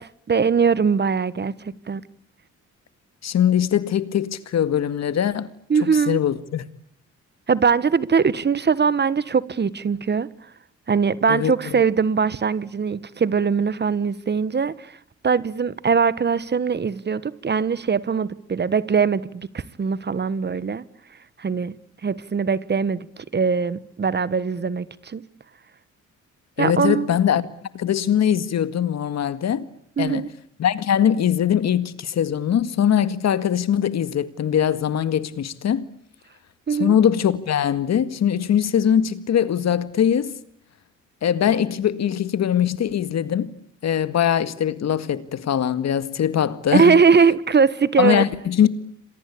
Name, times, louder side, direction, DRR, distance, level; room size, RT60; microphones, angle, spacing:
voice 1, 0.0-2.0 5.7-6.2 7.5-10.3 10.9-15.0 15.2-20.8 21.4-21.7 22.0-25.2 26.6-27.2 30.0-30.3 36.7-36.9 46.7-48.2, right 5 dB, 35° right, 1.3 m, -21 dB
voice 2, 3.2-5.5 5.8-6.7 11.3-11.8 26.6-27.5 27.7-29.7 30.0-30.3 30.6-35.9 36.7-40.4 41.2-43.5 43.8-47.0 48.0-48.7, left 9 dB, 60° left, 2.0 m, -21 dB
27.5 x 23.0 x 8.6 m
cardioid pair, 90°, 30 cm